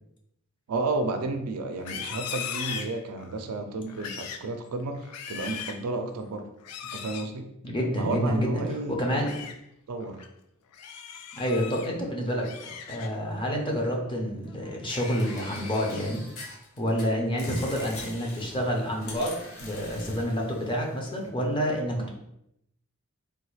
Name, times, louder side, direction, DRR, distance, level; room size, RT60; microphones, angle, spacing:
voice 1, 0.7-6.5 6.9-7.5 8.0-9.0 9.9-10.2 22.0-22.1, right 2 dB, 85° right, 6 dB, 0.4 m, -32 dB
Livestock farm animals working animals, 1.7-3.4 3.9-4.5 4.9-5.9 6.6-7.3 9.0-9.6 10.0-10.3 10.7-11.9 12.3-13.3 13.7-14.1 14.5-14.9, left 8 dB, 90° left, 0.4 m, -38 dB
voice 2, 7.6-8.6 8.9-9.3 11.3-12.5 12.9-16.2 16.8-19.3 19.6-22.1, equal, 20° left, 0 dB, 0.6 m, -28 dB
sound 1, 14.9-17.0 17.4-21.3, left 3 dB, 65° left, 0.9 m, -43 dB
3.3 x 2.3 x 3.1 m, 0.79 s
head